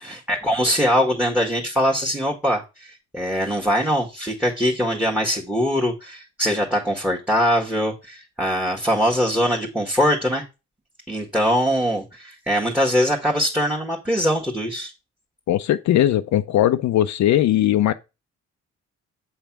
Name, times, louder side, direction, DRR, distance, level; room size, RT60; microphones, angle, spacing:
voice 1, 0.0-10.4 11.1-14.9, equal, 5° right, 1.5 m, -22 dB
voice 2, 15.5-17.9, left 12 dB, 65° left, 0.6 m, -19 dB
8.1 x 3.4 x 6.0 m
cardioid pair, 90°, 30 cm